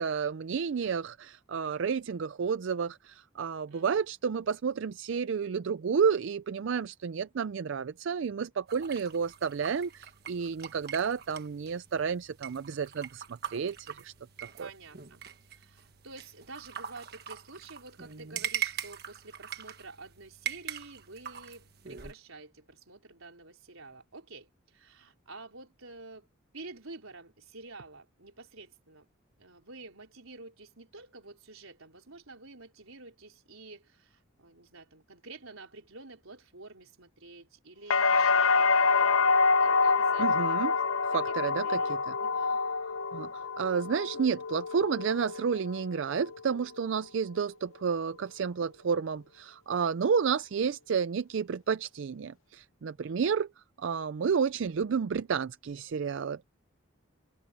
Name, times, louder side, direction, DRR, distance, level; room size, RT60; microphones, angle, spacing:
voice 1, 0.0-13.2 13.5-14.1 14.6-14.7 40.2-40.7 41.1-41.8 43.1-53.5 53.8-56.4, right 6 dB, 65° right, 0.4 m, -31 dB
voice 2, 3.7-4.0 14.6-15.2 15.5-26.3 26.5-29.1 29.4-40.9 41.3-42.6 53.0-53.3, right 3 dB, 90° right, 4.5 m, -49 dB
sound 1, 8.7-22.1, right 9 dB, 50° right, 1.4 m, -42 dB
sound 2, 37.9-45.8 46.2-46.8, left 4 dB, 75° left, 0.7 m, -26 dB
head